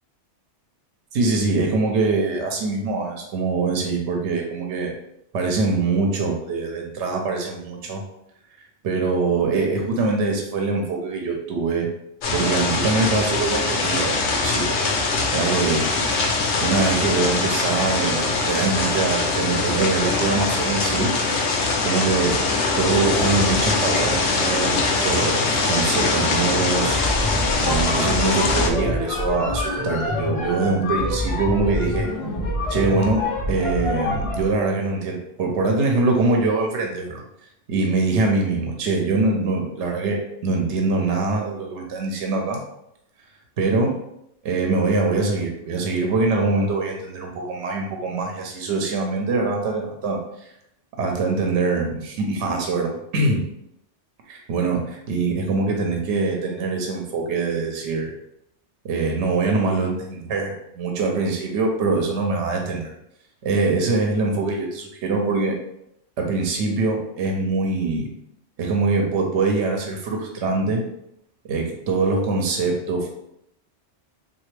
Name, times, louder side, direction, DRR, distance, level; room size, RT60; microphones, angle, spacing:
voice 1, 1.1-4.9 5.3-8.0 8.8-11.9 12.3-14.8 15.1-15.9 16.6-21.1 21.8-22.4 22.8-27.0 27.6-32.1 32.7-37.2 37.7-42.6 43.6-44.0 44.4-50.2 51.0-53.4 54.3-58.1 58.8-62.9 63.4-65.6 66.2-68.1 68.6-70.8 71.4-73.1, right 3 dB, 75° right, 2 dB, 0.9 m, -23 dB
sound 1, 12.2-28.7, left 3 dB, 75° left, 0.9 m, -22 dB
sound 2, 26.7-34.5, left 1 dB, 40° left, 0.6 m, -26 dB
3.2 x 2.5 x 3.2 m, 0.78 s
omnidirectional pair, 1.2 m